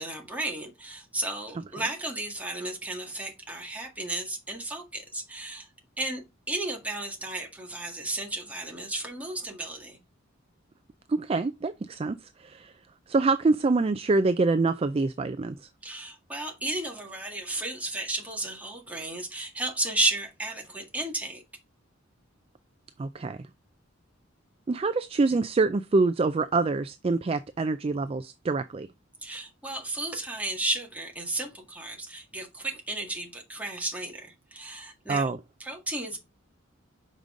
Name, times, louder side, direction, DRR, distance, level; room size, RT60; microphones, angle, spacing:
voice 1, 0.0-5.7 6.0-10.0 15.8-21.4 29.2-35.3 35.6-36.2, right 2 dB, 5° right, 1.8 m, -33 dB
voice 2, 11.1-12.7 13.1-15.6 23.0-23.4 24.7-28.9 35.1-35.4, right 3 dB, 30° right, 0.3 m, -25 dB
6.5 x 5.2 x 3.7 m
head